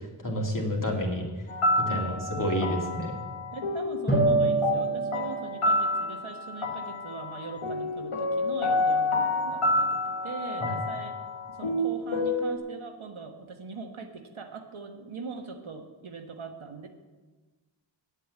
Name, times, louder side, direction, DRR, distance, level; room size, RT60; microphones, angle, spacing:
voice 1, 0.2-1.2 1.8-3.2 10.6-10.8, equal, 40° left, -1 dB, 2.4 m, -29 dB
sound 1, 1.5-12.6, left 1 dB, 85° left, 1.5 m, -28 dB
voice 2, 1.9-2.3 3.5-11.1 11.5-16.9, right 4 dB, 75° right, 4 dB, 1.3 m, -41 dB
Drum, 4.1-6.7, right 1 dB, 20° left, 2.4 m, -32 dB
8.5 x 8.3 x 8.2 m, 1.3 s
wide cardioid pair, 60°, 49 cm